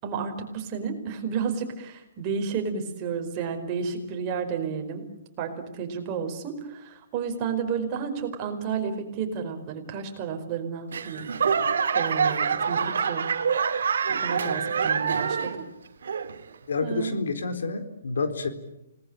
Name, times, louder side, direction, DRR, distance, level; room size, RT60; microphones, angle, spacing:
voice 1, 0.0-5.1 5.4-11.3 11.9-13.3 14.1-15.6 16.8-17.2, right 6 dB, 25° right, 4 dB, 4.9 m, -31 dB
Laughter / Clapping / Crowd, 10.9-15.7 16.0-16.5 17.1-17.2, right 6 dB, 75° right, 2.4 m, -26 dB
voice 2, 16.7-18.5, left 4 dB, 85° left, 8 dB, 4.2 m, -29 dB
29.5 x 19.5 x 8.9 m, 0.88 s
hypercardioid pair, 165°, 0 cm